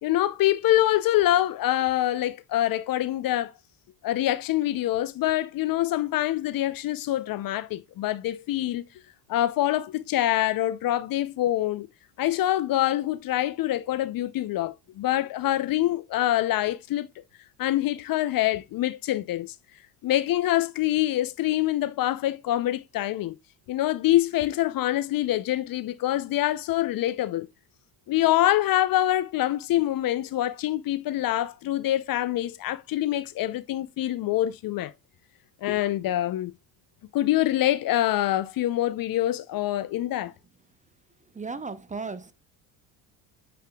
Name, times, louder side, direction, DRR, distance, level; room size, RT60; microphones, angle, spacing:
voice 1, 0.0-3.5 4.0-8.8 9.3-11.9 12.2-17.1 17.6-19.5 20.0-23.4 23.7-27.5 28.1-34.9 35.6-36.5 37.1-40.3, left 14 dB, 45° left, 0.5 m, -25 dB
voice 2, 41.3-42.3, right 4 dB, 15° right, 0.6 m, -35 dB
7.5 x 5.7 x 2.2 m
supercardioid pair, 85°, 48 cm